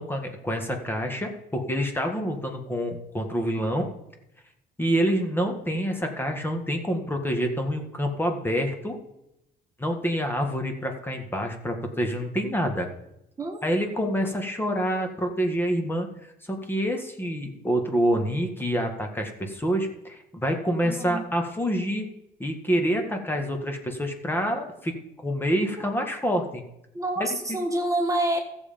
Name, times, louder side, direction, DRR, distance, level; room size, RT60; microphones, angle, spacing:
voice 1, 0.0-3.9 4.8-9.0 9.8-12.9 13.6-16.1 16.4-22.1 22.4-24.9 25.2-26.6 27.5-27.6, equal, 10° left, 4 dB, 1.7 m, -27 dB
voice 2, 20.8-21.2 25.8-25.9 26.9-28.4, right 1 dB, 20° right, 3 dB, 1.6 m, -27 dB
14.0 x 7.4 x 5.2 m, 0.84 s
cardioid pair, 110°, 17 cm